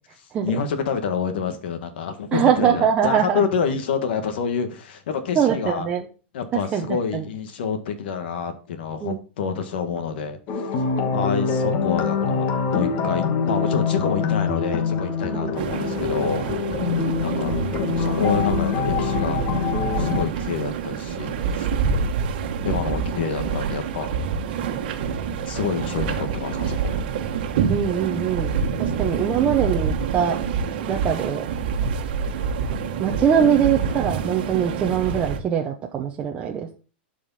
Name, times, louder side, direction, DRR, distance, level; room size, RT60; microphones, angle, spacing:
voice 1, 0.4-5.9 6.3-10.4 11.1-16.5 17.2-17.6 18.0-19.4 20.0-21.7 22.6-24.2 25.5-27.0, left 6 dB, 65° left, 9 dB, 1.7 m, -27 dB
voice 2, 2.3-3.4 5.4-6.0 6.5-6.9 7.1-7.2 9.0-9.2 15.3-15.7 27.7-28.5 28.8-30.4 30.9-31.5 33.0-36.7, right 8 dB, 20° right, 1 dB, 0.7 m, -22 dB
sound 1, 10.5-20.3, left 5 dB, 35° left, 1.4 m, -24 dB
sound 2, 15.6-35.4, right 6 dB, 55° right, 1.4 m, -27 dB
11.5 x 5.0 x 4.2 m, 0.36 s
supercardioid pair, 165°, 6 cm